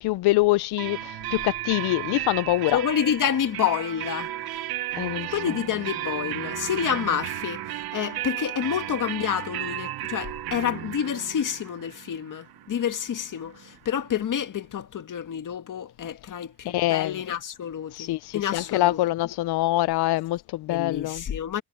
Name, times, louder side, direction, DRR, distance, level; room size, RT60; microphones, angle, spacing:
voice 1, 0.0-2.8 5.0-5.4 16.2-16.4 16.6-17.2 17.9-21.2, left 17 dB, 85° left, 0.5 m, -25 dB
sound 1, 0.8-14.4, right 13 dB, 70° right, 1.0 m, -34 dB
voice 2, 2.7-4.3 5.3-19.0 20.7-21.6, left 9 dB, 55° left, 1.9 m, -28 dB
cardioid pair, 135°, 38 cm